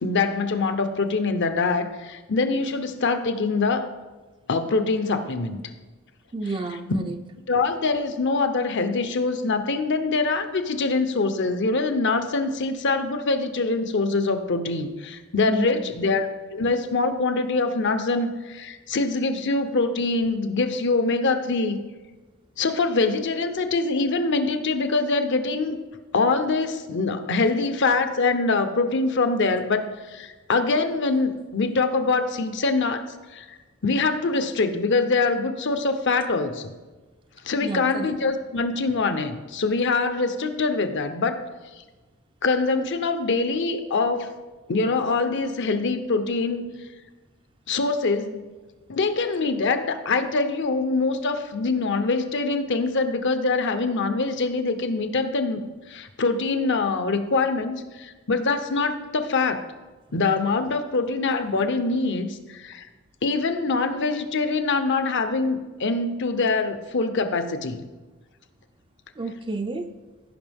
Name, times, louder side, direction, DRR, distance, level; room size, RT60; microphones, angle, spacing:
voice 1, 0.0-3.9 4.5-5.6 6.9-7.0 7.5-21.8 22.6-25.8 26.1-33.6 33.8-36.7 37.4-41.4 42.4-44.3 44.7-46.7 47.7-48.4 48.9-55.6 55.9-59.6 60.1-62.9 63.2-67.8, left 3 dB, 60° left, 9 dB, 0.8 m, -24 dB
voice 2, 6.3-7.2 15.5-16.0 37.6-38.1 69.2-69.9, right 2 dB, 25° right, 7 dB, 0.4 m, -31 dB
16.0 x 5.4 x 3.5 m, 1.2 s
head